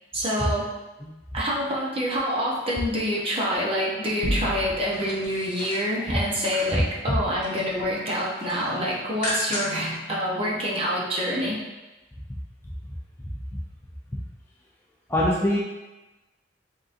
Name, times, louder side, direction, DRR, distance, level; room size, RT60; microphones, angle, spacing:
voice 1, 0.1-0.7 1.3-11.6, equal, 30° right, -5 dB, 0.9 m, -26 dB
sound 1, 4.2-5.2, right 1 dB, 80° right, 1.1 m, -29 dB
sound 2, 4.8-6.9 7.2-7.7 8.1-9.9 10.3-10.4, left 1 dB, 45° left, 1.2 m, -35 dB
voice 2, 15.1-15.6, left 1 dB, 15° left, -5 dB, 0.5 m, -23 dB
4.0 x 3.7 x 2.6 m, 1.1 s
head